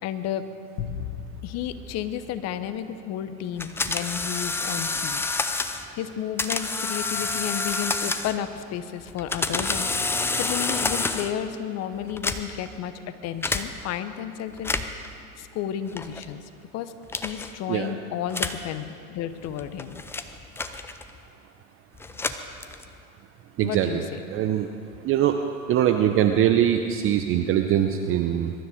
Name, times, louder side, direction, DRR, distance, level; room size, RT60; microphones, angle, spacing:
voice 1, 0.0-0.5 1.4-5.2 6.0-12.9 13.2-14.7 15.4-20.0 23.6-24.2, left 10 dB, 35° left, 11 dB, 1.0 m, -32 dB
sound 1, 0.8-3.3, left 7 dB, 60° left, 1.8 m, -37 dB
sound 2, 3.6-5.9 6.4-8.5 9.1-11.4 12.1-12.7 13.4-13.7 14.5-15.1 16.0-16.3 17.1-17.5 18.3-18.7 19.4-21.2 22.0-23.0, left 3 dB, 5° left, 0.4 m, -28 dB
voice 2, 23.6-24.7 25.0-25.3 25.7-28.5, right 10 dB, 30° right, 6 dB, 0.8 m, -22 dB
22.0 x 12.5 x 5.1 m, 2.5 s
hypercardioid pair, 100°, 44 cm